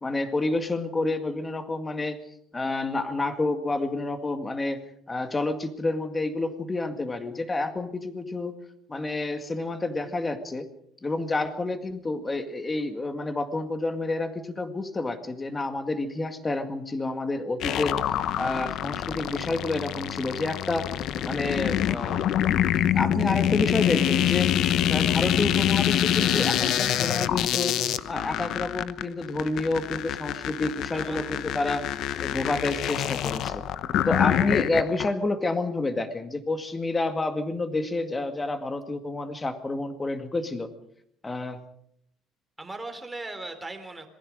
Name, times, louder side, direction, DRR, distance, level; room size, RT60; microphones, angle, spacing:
voice 1, 0.0-2.2 2.5-4.8 5.1-8.5 8.9-10.7 11.0-18.0 18.4-20.9 21.2-22.3 22.7-24.5 24.9-27.7 28.1-31.8 32.2-33.6 34.1-40.7 41.2-41.6, left 2 dB, 15° left, 8 dB, 2.0 m, -29 dB
sound 1, 17.6-35.1, left 11 dB, 60° left, 0.9 m, -26 dB
voice 2, 30.9-31.3 42.6-44.1, right 2 dB, 10° right, 5 dB, 3.4 m, -38 dB
26.5 x 20.5 x 5.1 m, 0.70 s
cardioid pair, 145°, 0 cm